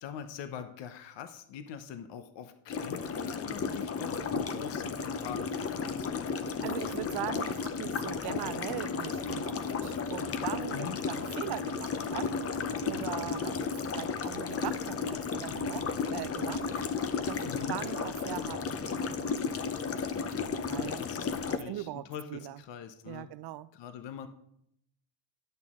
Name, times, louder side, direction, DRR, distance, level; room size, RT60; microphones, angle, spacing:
voice 1, 0.0-6.3 10.7-11.0 17.4-17.8 20.9-23.3 23.7-24.3, left 8 dB, 70° left, 0.8 m, -43 dB
sound 1, 2.7-21.6, left 5 dB, 35° left, 0.6 m, -33 dB
voice 2, 6.6-12.4 12.8-16.7 17.3-20.0 20.7-21.0 21.5-22.6 23.1-23.7, right 14 dB, 60° right, 0.5 m, -40 dB
10.5 x 6.0 x 3.6 m
cardioid pair, 105°, 44 cm